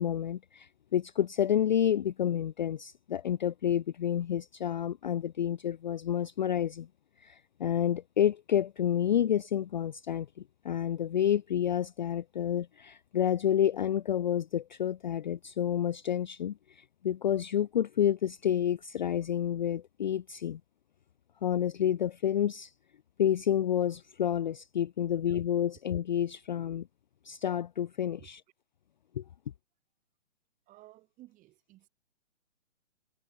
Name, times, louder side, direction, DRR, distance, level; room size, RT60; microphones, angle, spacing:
voice 1, 0.0-6.9 7.2-10.3 10.6-20.6 21.4-22.7 23.2-26.9 27.2-28.4 29.2-29.3, left 10 dB, 40° left, 0.5 m, -29 dB
voice 2, 30.7-31.9, right 17 dB, 20° right, 4.1 m, -55 dB
figure-of-eight pair, 135°, 38 cm